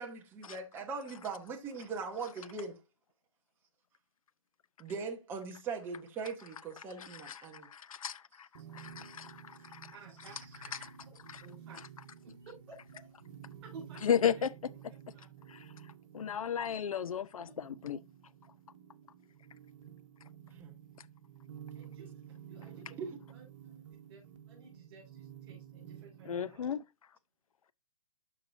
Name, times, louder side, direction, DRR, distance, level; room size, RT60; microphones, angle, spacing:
voice 1, 0.0-2.8 4.8-7.7 10.8-10.9 20.6-20.7 22.9-23.2, right 5 dB, 10° right, 0.9 m, -40 dB
voice 2, 7.0-8.5 8.7-9.9 10.8-10.9 11.3-11.4 14.0-14.5 15.5-15.6 16.1-18.0 26.2-26.8, left 8 dB, 80° left, 0.7 m, -34 dB
sound 1, 8.5-26.6, right 9 dB, 60° right, 1.4 m, -52 dB
voice 3, 9.9-10.4 11.4-11.9 12.2-13.0 13.6-14.5 15.1-15.3 17.2-17.5 21.8-22.2 22.5-23.4 24.1-24.2 24.5-26.7, right 4 dB, 45° right, 5.4 m, -54 dB
13.0 x 4.7 x 2.6 m
hypercardioid pair, 155°, 18 cm